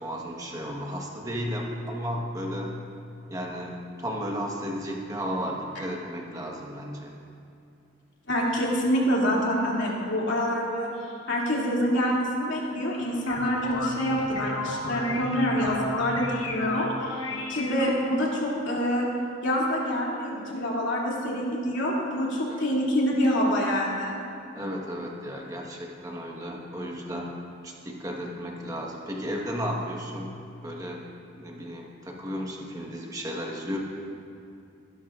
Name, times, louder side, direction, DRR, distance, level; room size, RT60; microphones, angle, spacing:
voice 1, 0.0-2.8 3.3-7.2 17.3-17.4 22.5-22.7 24.5-27.3 27.6-31.0 31.4-33.8, equal, 15° right, -1 dB, 1.3 m, -34 dB
voice 2, 8.3-10.9 11.3-19.1 19.4-24.2, equal, 65° left, -4 dB, 2.6 m, -26 dB
sound 1, 13.0-18.3, left 2 dB, 90° left, 1.3 m, -33 dB
21.5 x 11.0 x 2.5 m, 2.5 s
head